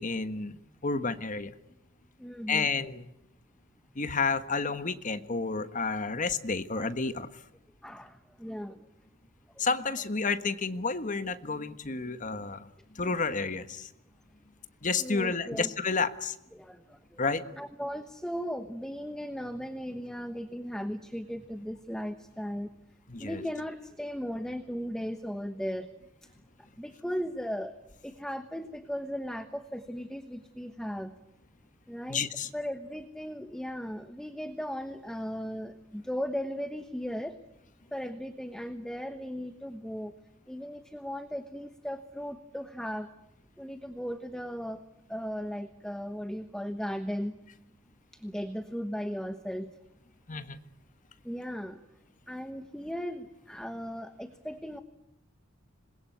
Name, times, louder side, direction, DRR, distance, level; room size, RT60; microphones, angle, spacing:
voice 1, 0.0-1.5 2.5-3.1 3.9-7.3 9.6-13.9 14.8-16.4 17.2-17.4 23.1-23.4 32.1-32.5 50.3-50.6, left 4 dB, 40° left, 11 dB, 1.4 m, -31 dB
voice 2, 2.2-2.7 6.7-6.9 7.8-8.9 9.5-9.7 15.0-15.7 16.5-17.2 17.5-22.7 23.2-25.9 26.8-27.8 28.0-31.2 31.9-32.2 32.5-37.4 37.9-40.1 40.5-43.1 43.6-44.8 45.1-47.3 48.1-49.7 51.2-51.8 52.3-54.8, equal, 5° left, 8 dB, 1.2 m, -37 dB
27.0 x 21.5 x 9.3 m, 0.86 s
head